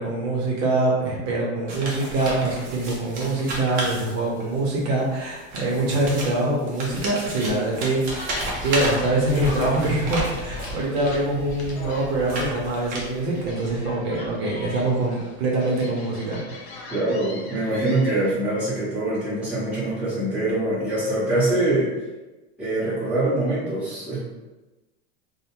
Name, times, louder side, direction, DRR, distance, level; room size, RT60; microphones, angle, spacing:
voice 1, 0.0-8.4 8.6-16.4, right 2 dB, 55° right, -3 dB, 0.7 m, -24 dB
sound 1, 1.7-4.6 5.3-10.8 11.5-13.4, right 1 dB, 25° right, 0.5 m, -32 dB
sound 2, 7.9-18.3, left 2 dB, 40° left, 0.5 m, -39 dB
voice 2, 16.9-21.9 22.6-24.2, right 2 dB, 5° right, -12 dB, 1.0 m, -24 dB
2.7 x 2.1 x 2.9 m, 1.1 s
supercardioid pair, 165°, 36 cm